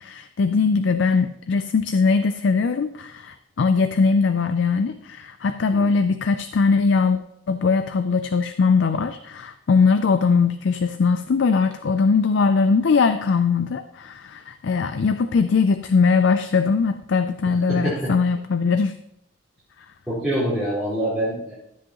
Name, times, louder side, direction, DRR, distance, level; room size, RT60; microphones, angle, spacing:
voice 1, 0.0-7.2 7.5-18.9, left 4 dB, 65° left, 10 dB, 0.4 m, -20 dB
voice 2, 17.7-18.1 20.1-21.6, right 1 dB, ahead, -14 dB, 4.4 m, -25 dB
13.0 x 7.7 x 3.0 m, 0.78 s
head